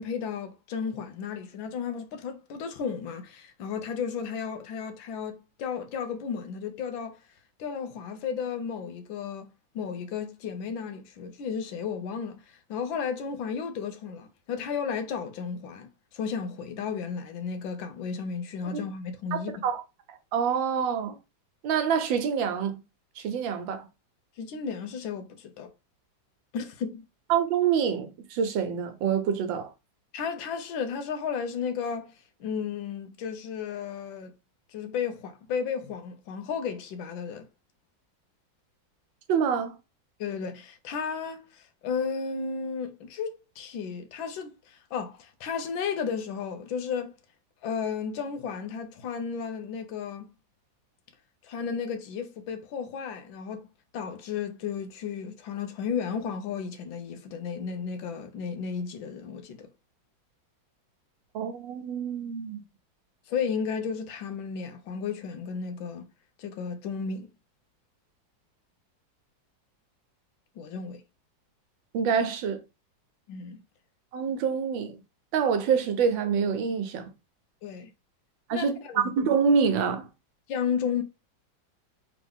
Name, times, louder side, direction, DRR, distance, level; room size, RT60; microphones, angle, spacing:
voice 1, 0.0-7.2 7.6-19.5 24.4-25.7 26.5-27.0 30.1-32.1 32.4-34.3 34.7-37.4 40.2-47.1 47.6-50.3 51.4-53.7 53.9-59.7 63.3-66.1 66.4-67.3 70.6-71.0 73.3-73.6 77.6-77.9 78.5-79.1 80.5-81.0, left 6 dB, 85° left, 1.5 m, -33 dB
voice 2, 19.3-19.8 20.3-21.1 21.6-22.8 23.2-23.9 27.3-29.7 39.3-39.7 61.3-62.6 71.9-72.6 74.1-75.0 75.3-77.1 78.5-80.1, right 6 dB, 80° right, 1.5 m, -26 dB
3.6 x 3.5 x 3.4 m
omnidirectional pair, 2.1 m